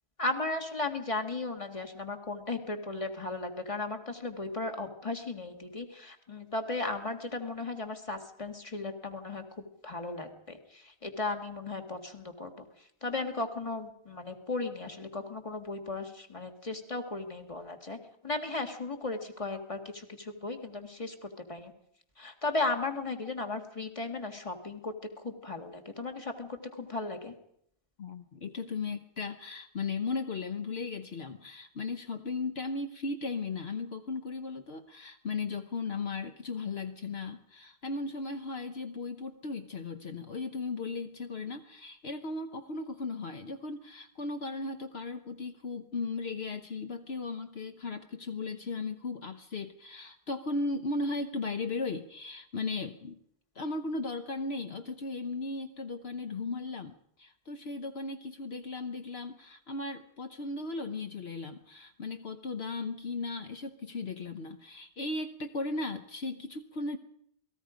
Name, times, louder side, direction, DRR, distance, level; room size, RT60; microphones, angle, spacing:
voice 1, 0.2-21.7 22.2-27.3, left 3 dB, 30° left, 5 dB, 2.1 m, -36 dB
voice 2, 28.0-53.2 53.5-67.0, left 3 dB, 65° left, 7 dB, 1.3 m, -36 dB
28.0 x 19.0 x 5.1 m, 0.72 s
omnidirectional pair, 1.1 m